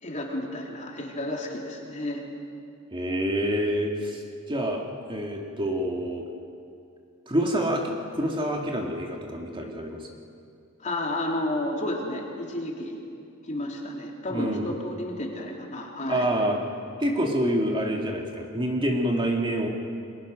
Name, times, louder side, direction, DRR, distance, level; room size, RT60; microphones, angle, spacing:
voice 1, 0.0-2.2 10.8-13.0 13.4-16.3, left 1 dB, 35° left, -1 dB, 3.6 m, -31 dB
voice 2, 2.9-4.2 4.5-6.3 7.3-10.1 14.3-14.7 16.1-16.6 17.0-19.7, equal, 25° right, 0 dB, 2.2 m, -27 dB
30.0 x 22.0 x 6.4 m, 2.5 s
head